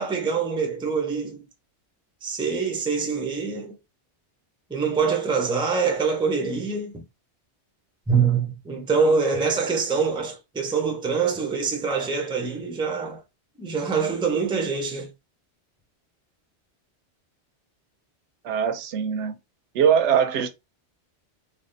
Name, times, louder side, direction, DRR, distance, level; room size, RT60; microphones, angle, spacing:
voice 1, 0.0-1.5 2.2-3.8 4.7-7.0 8.1-13.2 13.6-15.1, right 5 dB, 5° right, 0.4 m, -25 dB
voice 2, 18.4-19.3 19.7-20.5, right 8 dB, 85° right, 0.9 m, -21 dB
3.4 x 2.2 x 2.5 m
omnidirectional pair, 1.2 m